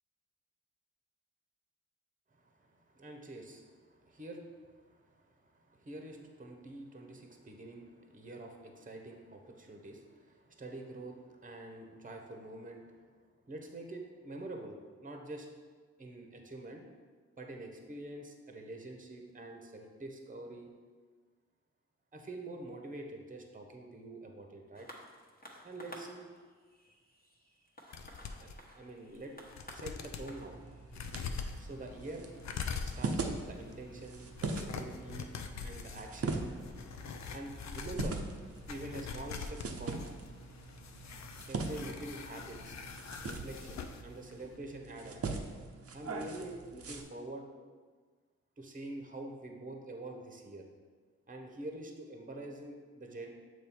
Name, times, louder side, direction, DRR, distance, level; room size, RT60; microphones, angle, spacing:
voice 1, 2.3-13.0 13.5-15.5 16.0-16.8 17.4-20.7 22.1-24.9 25.6-26.2 28.4-28.5 28.8-29.3 29.7-30.6 31.6-32.3 32.8-35.3 35.6-36.5 37.3-38.2 38.6-40.0 41.5-42.7 43.2-45.3 45.9-47.4 48.6-50.6 51.3-53.3, right 2 dB, 25° right, 2 dB, 0.9 m, -46 dB
sound 1, 24.7-33.6 34.4-34.5, equal, 30° left, 1.2 m, -55 dB
sound 2, 27.9-28.6 29.1-29.2 29.5-30.3 30.9-44.0 44.3-44.4, left 5 dB, 65° left, 0.5 m, -44 dB
sound 3, 30.2-47.0, right 3 dB, 50° right, 0.7 m, -42 dB
6.9 x 3.1 x 4.5 m, 1.5 s
cardioid pair, 50°, 30 cm